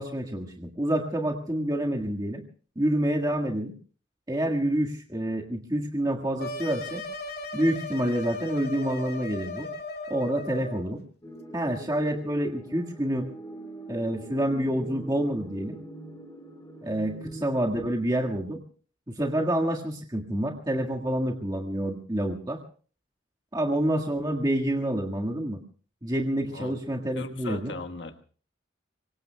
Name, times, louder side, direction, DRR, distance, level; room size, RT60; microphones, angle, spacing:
voice 1, 0.0-2.4 2.8-3.7 4.3-7.0 7.5-9.7 10.1-11.0 11.5-13.3 13.9-15.8 16.8-18.6 19.1-22.6 23.5-25.6 26.0-27.7, right 1 dB, 20° right, 1 dB, 1.7 m, -28 dB
sound 1, 6.4-10.9, left 3 dB, 50° left, 2.1 m, -37 dB
sound 2, 11.2-17.4, right 1 dB, 20° left, 4.4 m, -43 dB
voice 2, 27.1-28.2, left 2 dB, 70° left, 6 dB, 1.4 m, -38 dB
26.0 x 24.0 x 2.3 m, 0.41 s
head